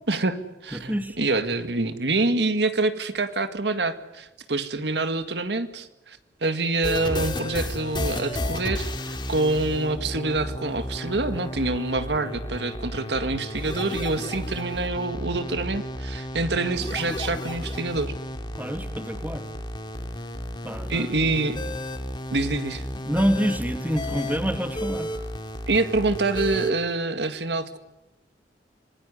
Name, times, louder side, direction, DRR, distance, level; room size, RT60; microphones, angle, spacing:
voice 1, 0.1-18.1 20.9-21.6 22.3-22.8 25.7-27.8, right 3 dB, 70° right, 9 dB, 2.0 m, -26 dB
voice 2, 0.7-1.2 18.5-19.5 20.6-21.1 23.0-25.1, equal, 10° right, 8 dB, 2.2 m, -27 dB
sound 1, 6.8-26.7, left 1 dB, 25° left, 2.6 m, -32 dB
26.5 x 21.0 x 9.8 m, 0.92 s
head